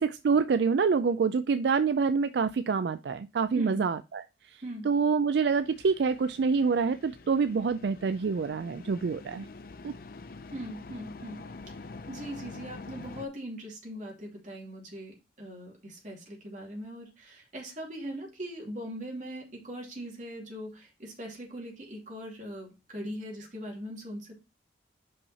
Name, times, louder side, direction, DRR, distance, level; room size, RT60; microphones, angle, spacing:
voice 1, 0.0-9.5 9.8-9.9, right 5 dB, 70° right, 0.4 m, -27 dB
sound 1, 5.5-13.3, left 3 dB, 55° left, 0.5 m, -46 dB
voice 2, 10.5-11.4 12.1-24.4, equal, 45° right, 2.6 m, -40 dB
5.5 x 5.4 x 4.2 m
head